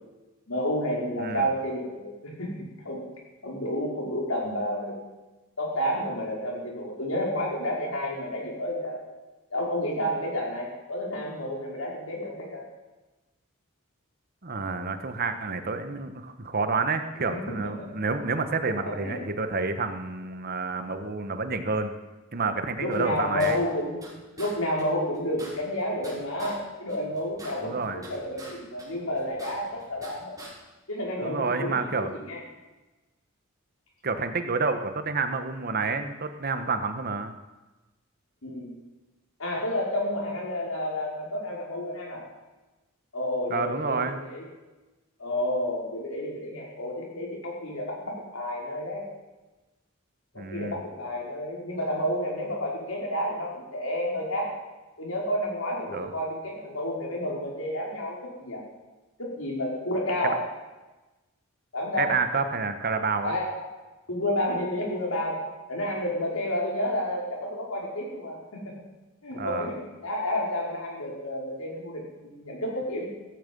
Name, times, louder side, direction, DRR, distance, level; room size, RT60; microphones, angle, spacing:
voice 1, 0.5-3.1 3.4-5.0 5.6-9.0 9.5-12.6 17.2-17.9 18.8-19.3 22.8-24.1 24.4-30.4 30.9-32.4 38.4-38.7 39.4-42.2 43.1-44.4 45.2-49.0 50.3-54.5 55.0-58.6 59.2-60.4 61.7-62.1 63.2-63.6 64.1-65.4 65.7-68.7 69.2-73.1, left 1 dB, 80° left, -2 dB, 5.2 m, -30 dB
voice 2, 14.4-21.9 22.3-23.6 27.6-28.1 31.2-32.1 34.0-37.3 43.5-44.2 50.4-50.8 55.9-56.1 60.2-60.3 62.0-63.3 69.3-69.7, right 4 dB, 50° right, 8 dB, 1.3 m, -29 dB
sound 1, 22.9-24.1 24.4-24.5 24.8-24.9 25.1-26.6 26.9-28.5 28.8-30.1 30.4-30.5, right 2 dB, 15° right, 6.4 m, -45 dB
16.0 x 15.0 x 5.5 m, 1.1 s
head